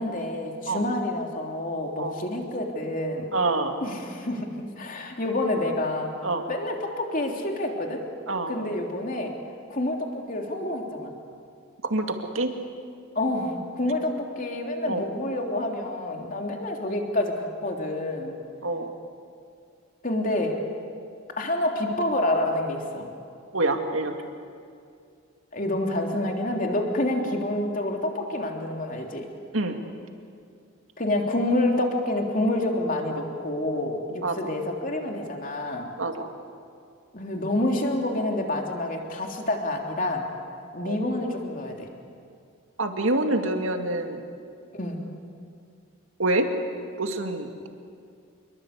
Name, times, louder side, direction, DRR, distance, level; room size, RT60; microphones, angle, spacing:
voice 1, 0.0-3.3 3.8-6.1 6.5-8.0 8.5-9.3 9.7-11.2 13.1-18.4 20.0-20.6 21.4-23.1 25.5-29.2 31.0-35.9 37.1-40.3 40.7-41.9 44.7-45.0, left 1 dB, 40° left, 2 dB, 3.2 m, -28 dB
voice 2, 3.3-3.7 6.2-6.4 8.3-8.5 11.8-12.5 14.9-15.1 18.6-18.9 23.5-24.2 29.5-29.8 34.2-34.4 36.0-36.3 40.8-41.0 42.8-44.2 46.2-46.5 47.0-47.5, right 2 dB, 75° right, 4 dB, 2.4 m, -26 dB
27.5 x 22.5 x 8.3 m, 2.3 s
head